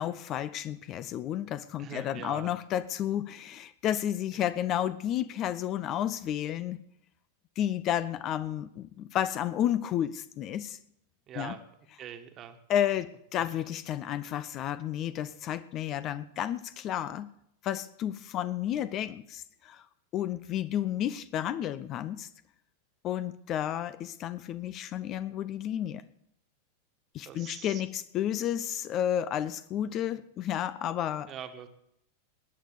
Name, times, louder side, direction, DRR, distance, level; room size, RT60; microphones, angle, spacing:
voice 1, 0.0-6.8 7.6-10.8 11.4-11.6 12.7-17.3 17.6-19.9 20.1-22.3 23.0-26.0 27.1-31.3, left 11 dB, 35° left, 15 dB, 0.6 m, -31 dB
voice 2, 1.8-2.5 4.3-4.4 11.3-11.6 12.0-12.6 27.3-27.8 31.3-31.7, right 9 dB, 30° right, 8 dB, 1.6 m, -42 dB
20.0 x 9.1 x 6.7 m, 0.76 s
figure-of-eight pair, 90°, 0 cm